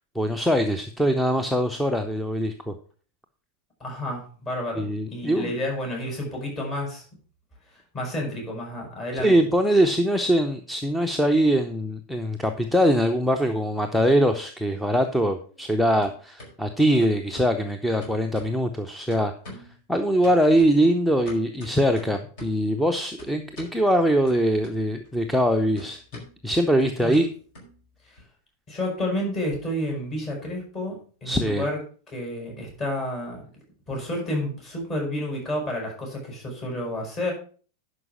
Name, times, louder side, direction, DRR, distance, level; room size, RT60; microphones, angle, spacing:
voice 1, 0.1-2.7 4.7-5.5 9.1-19.3 19.9-27.3 31.3-31.7, equal, ahead, 7 dB, 0.8 m, -22 dB
voice 2, 3.8-7.0 7.7-9.3 27.0-27.2 28.0-28.2 28.7-31.8 32.1-33.4 33.9-37.3, left 1 dB, 30° left, -1 dB, 6.1 m, -30 dB
sound 1, 13.0-13.8 14.1-15.7 16.0-16.5 17.0-17.6 18.0-18.8 19.1-19.8 20.2-22.7 23.2-23.8 24.3-25.1 25.3-28.2, equal, 50° left, 4.9 m, -46 dB
11.0 x 5.3 x 6.1 m, 0.41 s
figure-of-eight pair, 90°, 0 cm